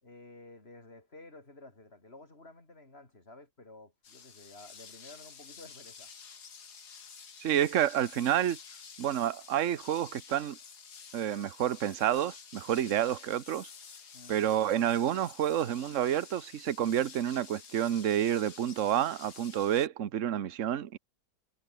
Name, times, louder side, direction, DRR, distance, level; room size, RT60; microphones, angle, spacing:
voice 1, 0.0-6.1 14.1-14.4, left 2 dB, 40° left, 4.5 m, -52 dB
sound 1, 4.0-19.9, left 6 dB, 75° left, 2.5 m, -50 dB
voice 2, 7.4-8.6 9.0-10.6 11.1-13.7 14.3-21.0, right 10 dB, 55° right, 1.3 m, -29 dB
omnidirectional pair, 1.7 m